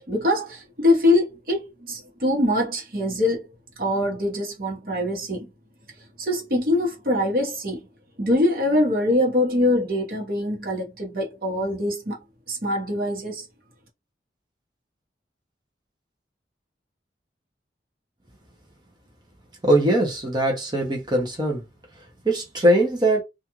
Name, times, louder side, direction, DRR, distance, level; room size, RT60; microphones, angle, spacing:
voice 1, 0.0-3.5 3.8-5.5 6.2-7.8 8.2-12.2 12.5-13.4, left 1 dB, 55° right, 1.1 m, -23 dB
voice 2, 19.6-21.6 21.9-23.2, right 1 dB, 25° right, 0.7 m, -21 dB
2.4 x 2.3 x 3.0 m
head